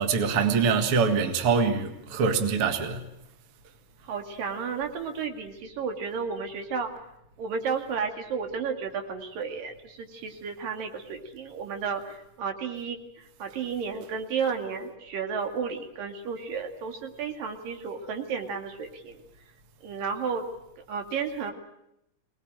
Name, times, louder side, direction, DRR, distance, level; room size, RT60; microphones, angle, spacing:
voice 1, 0.0-3.1, right 5 dB, 45° right, 2.4 m, -24 dB
voice 2, 4.1-6.9 7.4-19.2 19.8-20.5 20.9-21.5, right 6 dB, 80° right, 3.9 m, -32 dB
24.5 x 19.5 x 9.0 m
omnidirectional pair, 3.9 m